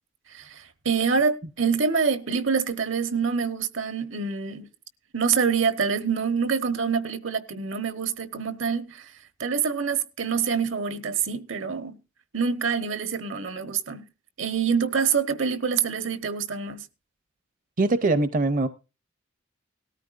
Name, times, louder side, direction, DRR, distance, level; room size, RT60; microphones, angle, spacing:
voice 1, 0.3-4.7 5.1-9.1 9.4-12.0 12.3-14.0 14.4-16.8, right 6 dB, 75° right, 1.1 m, -26 dB
voice 2, 17.8-18.7, right 2 dB, 45° right, 0.7 m, -22 dB
18.5 x 13.0 x 2.5 m
head